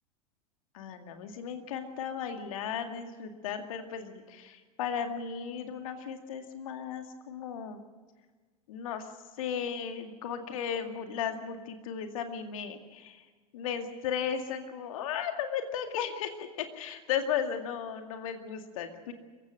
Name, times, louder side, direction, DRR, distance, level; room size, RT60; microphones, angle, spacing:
voice 1, 0.7-7.8 8.7-9.1 9.4-13.2 13.5-19.1, left 8 dB, 60° left, 6 dB, 2.1 m, -35 dB
25.5 x 15.5 x 7.7 m, 1.4 s
figure-of-eight pair, 80°, 19 cm